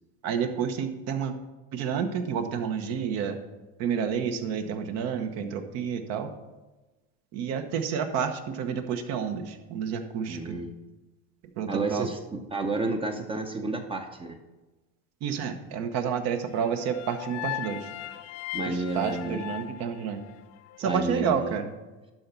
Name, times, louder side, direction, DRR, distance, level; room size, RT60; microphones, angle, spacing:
voice 1, 0.2-1.3 1.7-3.4 3.8-6.3 7.3-10.6 11.6-12.1 15.2-17.9 18.6-20.2 20.8-21.7, right 7 dB, 60° right, 7 dB, 1.1 m, -30 dB
voice 2, 10.3-10.7 11.7-14.4 18.5-19.4 20.8-21.6, right 3 dB, 20° right, 5 dB, 0.7 m, -31 dB
sound 1, 16.6-20.8, left 13 dB, 55° left, 0.5 m, -38 dB
11.5 x 4.0 x 5.6 m, 1.1 s
supercardioid pair, 125°, 29 cm